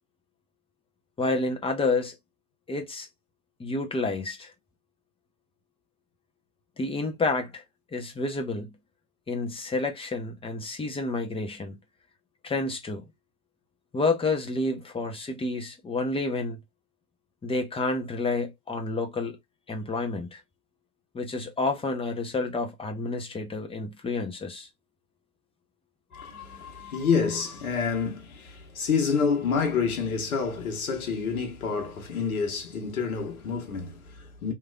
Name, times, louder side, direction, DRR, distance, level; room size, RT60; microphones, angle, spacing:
voice 1, 1.2-2.1 2.7-3.1 3.6-4.5 6.8-7.6 7.9-8.7 9.3-11.7 12.4-13.0 13.9-16.6 17.4-19.4 19.7-20.4 21.1-24.7, left 3 dB, 10° left, 0.9 m, -29 dB
voice 2, 26.1-34.5, left 5 dB, 75° left, 1.2 m, -28 dB
3.1 x 2.9 x 2.4 m
hypercardioid pair, 90°, 44 cm